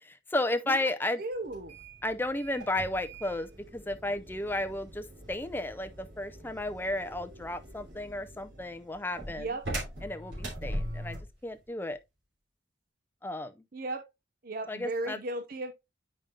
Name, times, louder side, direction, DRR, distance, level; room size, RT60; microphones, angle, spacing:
voice 1, 0.0-1.2 2.0-9.5 10.0-12.0 13.2-13.5 14.7-15.2, left 1 dB, 10° left, 0.5 m, -33 dB
voice 2, 1.2-1.8 9.4-9.6 13.7-14.0 14.4-15.7, right 2 dB, 50° right, 0.7 m, -35 dB
sound 1, 1.5-11.4, right 1 dB, 65° right, 3.0 m, -41 dB
9.0 x 5.1 x 2.5 m
head